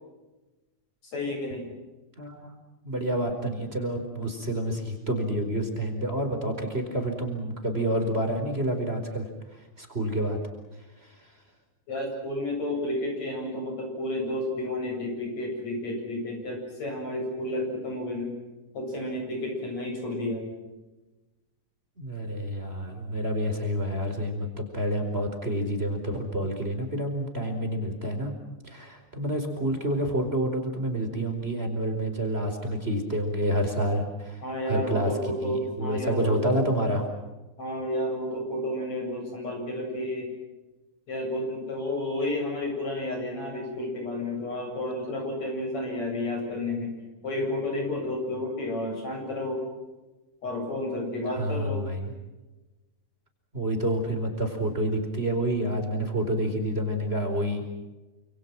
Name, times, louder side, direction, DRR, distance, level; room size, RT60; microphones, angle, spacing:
voice 1, 1.1-1.7 11.9-18.3 18.7-20.5 34.4-36.5 37.6-40.3 41.1-47.0 47.2-49.6 50.4-51.9, left 1 dB, 60° left, 2 dB, 9.0 m, -31 dB
voice 2, 2.2-2.5 2.8-10.4 11.0-11.1 22.0-28.3 28.6-35.1 35.4-37.1 51.4-52.1 53.5-57.7, right 1 dB, 20° right, 4 dB, 4.9 m, -28 dB
29.5 x 27.5 x 6.1 m, 1.1 s
omnidirectional pair, 3.4 m